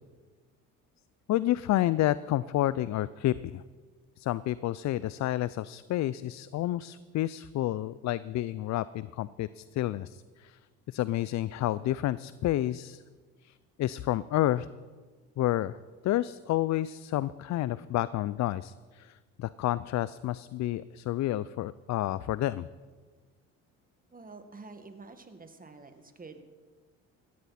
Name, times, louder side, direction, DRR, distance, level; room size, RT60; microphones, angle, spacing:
voice 1, 1.3-3.6 4.2-10.6 10.9-13.0 13.4-14.7 15.4-15.8 16.0-22.7, left 14 dB, 50° left, 18 dB, 0.5 m, -30 dB
voice 2, 24.1-26.4, right 3 dB, 20° right, 7 dB, 2.0 m, -48 dB
17.0 x 14.0 x 4.3 m, 1.4 s
hypercardioid pair, 65°, 38 cm